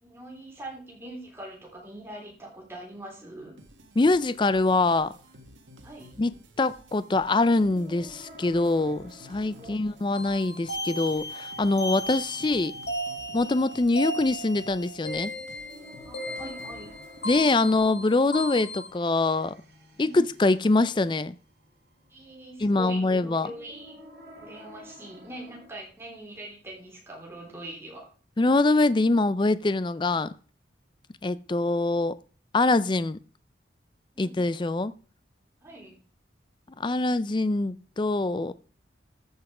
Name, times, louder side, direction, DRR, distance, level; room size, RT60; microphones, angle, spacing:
voice 1, 0.0-3.6 5.8-6.2 9.5-9.8 16.1-16.9 20.0-20.2 22.1-24.0 24.4-28.1 34.1-34.3 35.6-36.0, right 1 dB, 15° right, 3.4 m, -42 dB
sound 1, 3.6-18.1, equal, 90° right, 1.7 m, -53 dB
voice 2, 4.0-5.1 6.2-12.7 13.3-15.3 17.2-19.5 20.0-21.4 22.6-23.5 28.4-30.3 31.2-32.1 32.5-33.2 34.2-34.9 36.8-38.5, left 2 dB, 25° left, 0.4 m, -24 dB
sound 2, 7.5-25.7, equal, 65° right, 3.4 m, -52 dB
sound 3, 10.1-18.9, equal, 65° left, 2.0 m, -36 dB
14.0 x 5.5 x 4.9 m
head